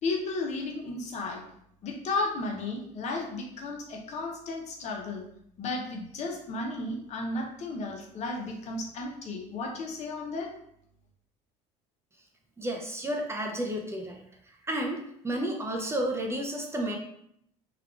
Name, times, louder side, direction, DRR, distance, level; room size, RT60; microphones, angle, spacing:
voice 1, 0.0-1.4 1.8-5.2 5.6-10.5, left 3 dB, 50° left, 1 dB, 0.7 m, -34 dB
voice 2, 12.6-14.2 14.6-17.0, right 1 dB, 15° right, 1 dB, 0.5 m, -31 dB
3.4 x 2.3 x 2.3 m, 0.72 s
supercardioid pair, 100°, 15 cm